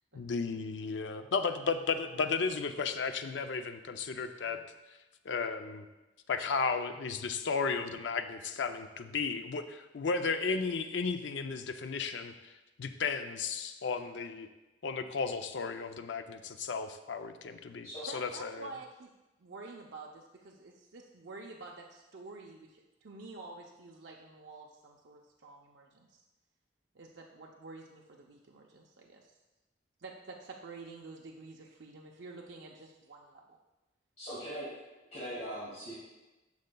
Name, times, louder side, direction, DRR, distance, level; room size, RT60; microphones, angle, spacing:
voice 1, 0.1-4.6 5.3-5.9 6.3-12.5 12.8-14.5 14.8-18.7, left 5 dB, 75° left, 8 dB, 0.5 m, -34 dB
voice 2, 18.0-19.1 19.4-26.2 26.9-29.3 30.0-33.4, right 3 dB, 70° right, -1 dB, 0.6 m, -49 dB
voice 3, 34.2-34.7 35.1-35.9, equal, 40° left, -9 dB, 2.0 m, -40 dB
10.5 x 6.5 x 2.3 m, 1.1 s
head